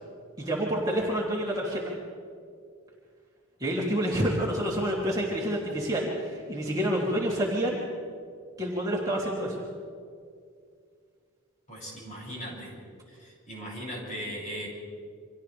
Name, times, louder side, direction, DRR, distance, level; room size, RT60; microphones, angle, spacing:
voice 1, 0.4-1.9 3.6-7.8 8.6-9.6, equal, 15° right, -5 dB, 2.9 m, -28 dB
voice 2, 11.7-12.7 13.1-14.7, equal, 35° left, -4 dB, 7.4 m, -38 dB
30.0 x 25.5 x 3.4 m, 2.2 s
head